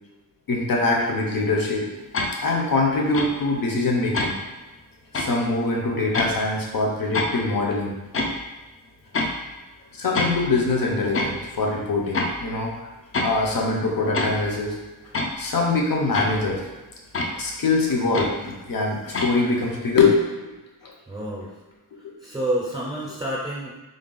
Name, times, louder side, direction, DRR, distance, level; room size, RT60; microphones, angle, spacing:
voice 1, 0.5-1.9 2.4-4.4 5.1-7.9 9.9-12.9 13.2-14.8 15.0-16.6 17.2-20.5 20.8-20.9 21.4-21.5, left 3 dB, 70° left, -1 dB, 0.8 m, -23 dB
sound 1, 2.1-2.3 3.1-3.3 4.1-4.3 5.1-5.3 6.1-6.3 7.1-7.3 8.1-8.4 9.1-9.3 10.1-10.5 11.1-11.4 12.1-12.5 13.1-13.4 14.1-14.5 15.1-15.4 16.1-16.5 17.1-17.3 18.1-18.3 19.1-19.3, left 2 dB, 40° left, 0.4 m, -26 dB
voice 2, 21.1-21.5 22.2-23.7, right 1 dB, 10° right, -6 dB, 0.5 m, -28 dB
3.8 x 2.3 x 3.8 m, 1.2 s
wide cardioid pair, 165°, 35 cm